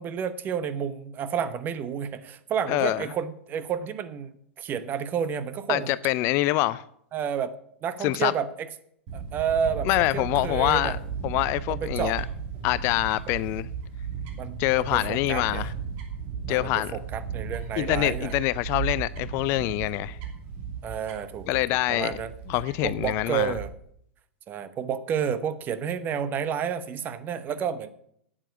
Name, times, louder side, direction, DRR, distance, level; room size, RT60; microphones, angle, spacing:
voice 1, 0.0-5.9 7.1-7.6 7.8-8.7 9.1-11.0 11.7-12.1 14.4-15.7 16.5-18.3 20.8-21.5 21.9-22.3 22.8-23.7 24.5-27.9, right 7 dB, 30° right, 1.0 m, -30 dB
voice 2, 2.7-3.0 5.7-6.8 8.0-8.3 9.8-11.0 11.2-12.2 12.6-13.7 14.6-15.7 16.5-16.9 17.8-20.2 21.5-22.2 22.5-23.5, left 18 dB, 40° left, 0.4 m, -25 dB
Fowl / Bird, 9.1-23.7, right 6 dB, 45° right, 2.9 m, -35 dB
8.9 x 8.9 x 8.4 m
figure-of-eight pair, 95°, 7 cm